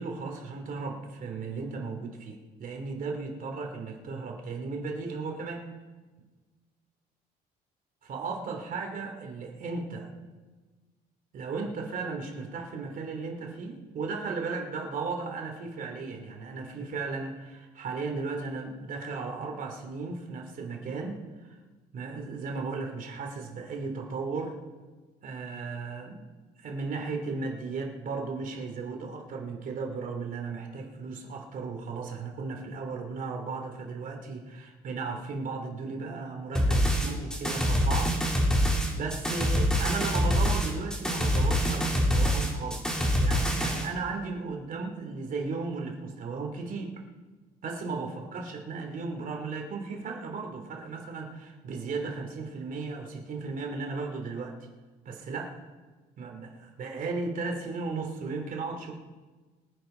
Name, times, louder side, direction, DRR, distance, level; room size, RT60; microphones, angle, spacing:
voice 1, 0.0-5.7 8.0-10.1 11.3-21.6 21.9-24.6 25.2-26.3 26.6-38.7 38.9-47.0 47.6-54.5 55.0-55.6 56.2-58.9, right 4 dB, 55° right, 2 dB, 3.1 m, -35 dB
sound 1, 36.5-43.9, equal, 5° left, 3.4 m, -25 dB
24.5 x 10.0 x 4.0 m, 1.4 s
cardioid pair, 110°, 17 cm